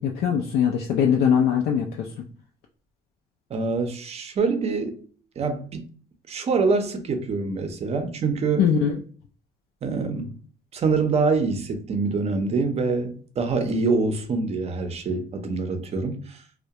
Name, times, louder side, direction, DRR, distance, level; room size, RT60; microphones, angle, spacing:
voice 1, 0.0-2.1 8.6-9.0, left 8 dB, 75° left, 0.4 m, -21 dB
voice 2, 3.5-5.0 5.4-5.8 6.3-8.7 9.8-10.4 10.7-16.4, right 4 dB, 40° right, 0.5 m, -25 dB
2.2 x 2.1 x 2.7 m
cardioid pair, 110°, 17 cm